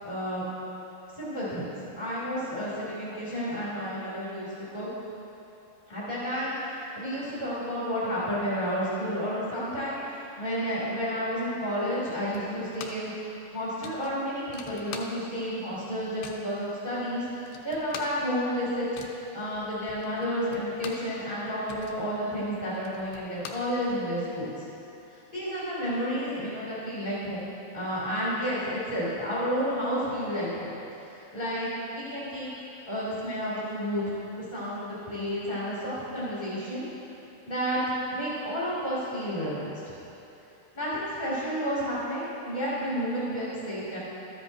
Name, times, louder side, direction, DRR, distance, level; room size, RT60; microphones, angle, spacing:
voice 1, 0.0-0.4 1.1-4.9 5.9-13.1 13.5-18.9 19.3-24.6 25.1-27.5 27.7-30.7 31.0-32.5 32.9-34.0 34.3-36.8 37.4-37.8 38.1-39.7 40.7-44.0, equal, 45° left, -10 dB, 0.5 m, -31 dB
sound 1, 12.3-13.2 13.4-13.5 13.8-15.5 15.8-16.5 17.0-17.1 17.3-21.2 21.5-24.2, left 6 dB, 80° left, 2.2 m, -44 dB
13.0 x 10.5 x 2.7 m, 2.9 s
omnidirectional pair, 5.2 m